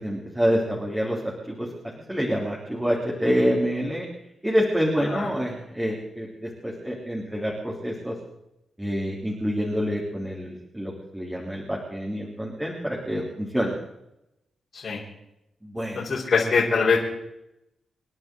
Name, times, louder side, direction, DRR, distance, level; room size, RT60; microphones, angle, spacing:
voice 1, 0.0-1.7 2.1-4.1 4.4-8.1 8.8-13.7 15.6-16.1, equal, 10° right, -3 dB, 3.5 m, -27 dB
voice 2, 15.9-17.0, left 5 dB, 60° left, -4 dB, 4.4 m, -23 dB
28.5 x 10.5 x 3.9 m, 0.86 s
cardioid pair, 95°, 0 cm